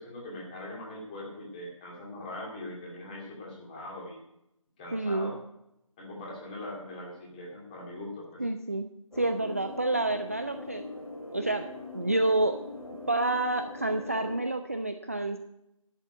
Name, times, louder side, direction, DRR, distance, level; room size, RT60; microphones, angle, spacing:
voice 1, 0.0-4.2 4.8-5.4 6.0-8.4, left 1 dB, 15° left, -2 dB, 2.3 m, -41 dB
voice 2, 4.9-5.3 8.4-8.9 9.2-10.8 11.3-11.7 11.9-12.6 13.1-15.4, right 2 dB, 25° right, 6 dB, 0.4 m, -28 dB
sound 1, 9.1-14.4, left 2 dB, 85° left, 2.7 m, -42 dB
11.5 x 7.3 x 7.7 m, 0.84 s
figure-of-eight pair, 165°, 17 cm